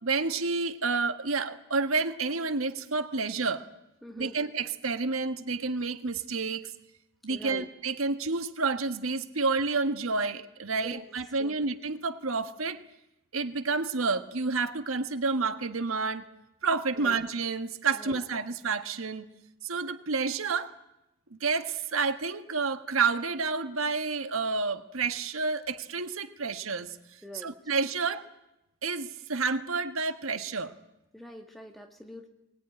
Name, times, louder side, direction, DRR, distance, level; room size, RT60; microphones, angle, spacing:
voice 1, 0.0-3.6 4.2-6.7 7.2-12.8 13.3-16.2 16.6-19.2 19.6-20.7 21.4-28.2 28.8-30.7, right 4 dB, 90° right, 10 dB, 1.4 m, -29 dB
voice 2, 4.0-4.4 7.3-7.7 10.7-11.0 11.4-11.6 17.0-17.2 17.9-18.2 27.2-27.5 31.1-32.3, equal, ahead, 3 dB, 2.1 m, -44 dB
22.0 x 19.5 x 9.7 m, 0.89 s
head